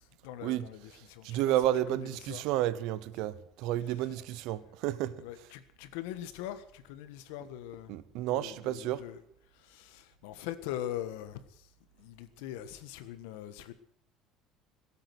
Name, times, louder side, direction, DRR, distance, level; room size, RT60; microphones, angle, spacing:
voice 1, 0.0-1.6 1.9-2.4 5.2-8.0 8.3-9.2 9.5-11.7 12.0-13.7, left 12 dB, 85° left, 1.4 m, -42 dB
voice 2, 1.2-5.2 7.9-9.0, right 13 dB, 55° right, 0.8 m, -31 dB
17.0 x 8.9 x 8.0 m
cardioid pair, 180°, 0 cm